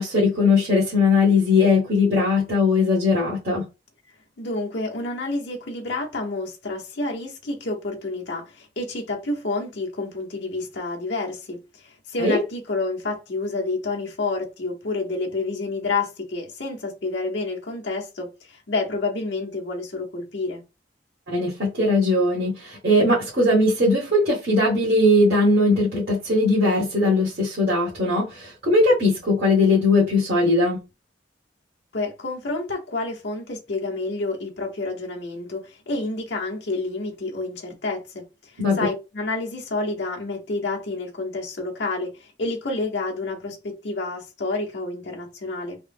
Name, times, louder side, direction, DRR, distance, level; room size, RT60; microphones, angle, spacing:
voice 1, 0.0-3.6 12.2-12.4 21.3-30.8 38.6-38.8, left 2 dB, 55° right, 1.1 m, -19 dB
voice 2, 4.4-20.6 31.9-38.2 38.8-45.8, left 3 dB, 70° left, 0.9 m, -29 dB
3.3 x 2.0 x 3.3 m
head